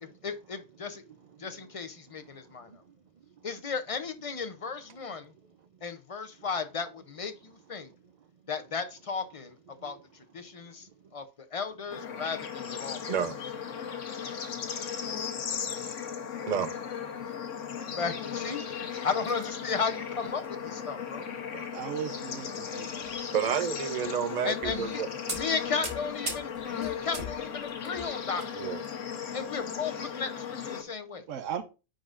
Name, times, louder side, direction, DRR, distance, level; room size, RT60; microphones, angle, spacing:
voice 1, 0.0-1.0 1.4-2.7 3.4-5.3 5.8-7.9 8.5-9.6 9.8-10.0 10.3-11.2 11.5-13.2 17.2-17.3 17.9-21.3 24.4-25.0 25.3-28.6 29.3-31.2, left 5 dB, 40° left, 0.5 m, -35 dB
Bird / Insect / Frog, 11.9-30.8, left 7 dB, 75° left, 1.3 m, -37 dB
voice 2, 13.1-13.4 16.4-16.7 22.7-22.8 23.3-25.1 28.5-28.8, right 8 dB, 45° right, 0.6 m, -30 dB
sound 1, 19.2-19.9 20.3-20.5 20.8-21.1 22.1-22.4 23.0-23.2 24.0-24.1 24.6-24.9 25.3-29.0 29.3-29.4 30.0-30.1, equal, 25° right, 1.6 m, -40 dB
voice 3, 21.5-23.3 31.3-31.6, right 8 dB, 80° right, 1.0 m, -38 dB
9.9 x 3.9 x 2.5 m
omnidirectional pair, 1.3 m